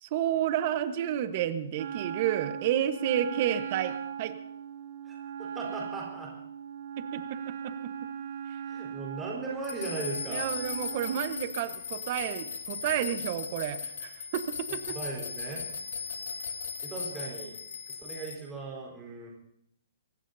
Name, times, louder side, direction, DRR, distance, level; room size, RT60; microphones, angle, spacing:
voice 1, 0.0-4.4 7.0-7.9 10.3-14.9, right 10 dB, 40° right, 10 dB, 1.2 m, -31 dB
Wind instrument woodwind instrument, 1.8-11.4, right 8 dB, 70° right, 2.2 m, -39 dB
voice 2, 5.0-6.3 8.6-10.5 14.9-15.7 16.8-17.6 17.9-19.3, right 3 dB, 10° right, -3 dB, 4.3 m, -38 dB
sound 1, 9.6-18.3, left 6 dB, 85° left, 3.2 m, -38 dB
24.0 x 17.5 x 2.8 m, 0.73 s
hypercardioid pair, 165°, 0 cm